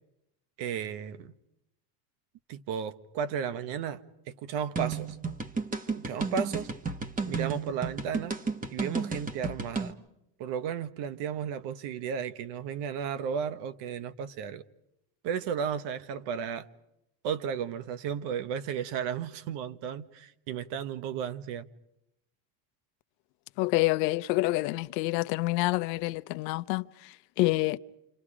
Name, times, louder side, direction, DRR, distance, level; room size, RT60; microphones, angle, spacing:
voice 1, 0.6-1.3 2.5-5.2 5.9-6.7 7.2-8.4 8.7-9.9 10.4-14.6 15.2-16.7 17.2-21.7, right 7 dB, 55° right, 1.5 m, -34 dB
sound 1, 4.8-9.9, right 4 dB, 15° right, 1.4 m, -32 dB
voice 2, 23.6-27.8, left 20 dB, 80° left, 1.0 m, -28 dB
29.5 x 27.5 x 5.0 m
cardioid pair, 150°, 50 cm